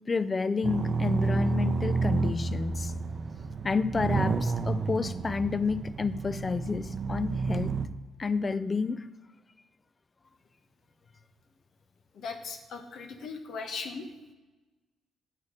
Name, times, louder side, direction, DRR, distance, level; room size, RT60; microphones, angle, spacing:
voice 1, 0.1-2.9 3.6-7.7 8.2-9.1, left 4 dB, 30° left, 0.4 m, -30 dB
sound 1, 0.6-7.9, right 4 dB, 45° right, 0.6 m, -30 dB
voice 2, 12.1-14.1, left 4 dB, 70° left, 1.2 m, -38 dB
8.2 x 7.2 x 5.2 m
cardioid pair, 90°, 0 cm